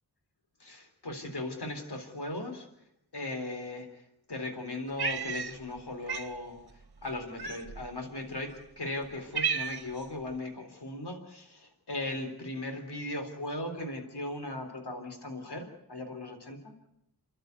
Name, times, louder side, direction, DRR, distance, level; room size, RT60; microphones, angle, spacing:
voice 1, 0.6-2.7 3.1-4.0 4.3-6.6 7.0-16.9, left 2 dB, 75° left, 5 dB, 3.9 m, -38 dB
Cat, 5.0-5.8 6.1-6.3 7.4-7.9 8.6-8.7 9.0-10.0, right 6 dB, 65° right, 1.4 m, -33 dB
29.5 x 12.0 x 9.6 m, 0.81 s
wide cardioid pair, 45°, 40 cm